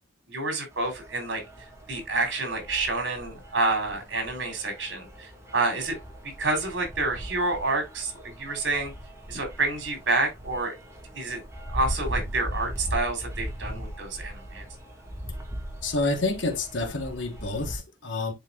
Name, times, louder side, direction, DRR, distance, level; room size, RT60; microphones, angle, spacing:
voice 1, 0.3-1.4 1.9-6.0 6.2-8.1 8.4-8.9 9.3-10.7 11.1-11.4 11.7-14.7, right 3 dB, 65° right, 3.5 m, -28 dB
sound 1, 0.7-17.8, equal, 15° right, 1.9 m, -39 dB
voice 2, 15.8-18.3, left 2 dB, 75° left, 1.4 m, -28 dB
10.0 x 4.5 x 2.4 m
head